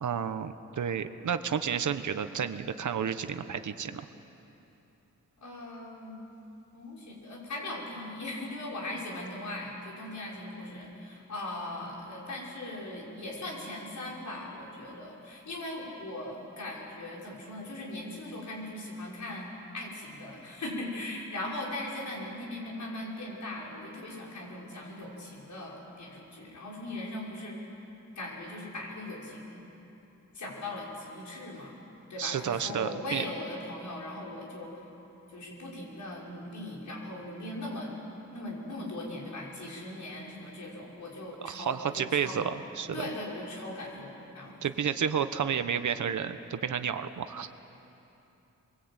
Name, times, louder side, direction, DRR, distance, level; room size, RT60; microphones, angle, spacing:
voice 1, 0.0-4.1 32.2-33.2 41.4-43.0 44.6-47.5, right 7 dB, 70° right, 10 dB, 1.2 m, -31 dB
voice 2, 5.4-6.2 6.7-19.5 19.7-27.7 28.2-29.6 30.3-31.8 32.1-34.8 35.3-38.0 38.3-42.4 42.9-44.6, left 1 dB, 70° left, -3 dB, 6.2 m, -39 dB
27.5 x 22.5 x 9.0 m, 3.0 s
wide cardioid pair, 140°, 30 cm